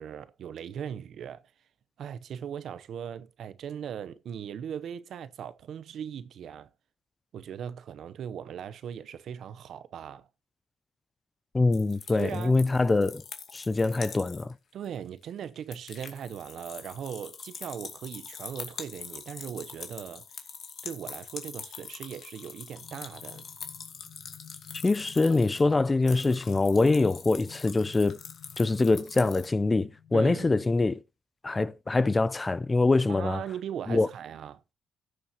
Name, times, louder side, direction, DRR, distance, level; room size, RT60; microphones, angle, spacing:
voice 1, 0.0-1.4 2.0-6.7 7.3-10.3 12.1-12.6 14.7-20.2 20.8-23.5 30.1-30.5 33.1-34.6, right 8 dB, 65° right, 0.8 m, -39 dB
voice 2, 11.5-13.2 13.5-14.5 24.8-28.2 28.6-31.0 31.4-33.4 33.9-34.1, left 3 dB, 25° left, 0.4 m, -24 dB
sound 1, 11.7-14.5 14.8-14.9 15.2-29.5, left 6 dB, 55° left, 2.3 m, -44 dB
sound 2, 22.8-31.0, left 8 dB, 70° left, 1.1 m, -53 dB
16.5 x 7.1 x 2.9 m
cardioid pair, 90°, 0 cm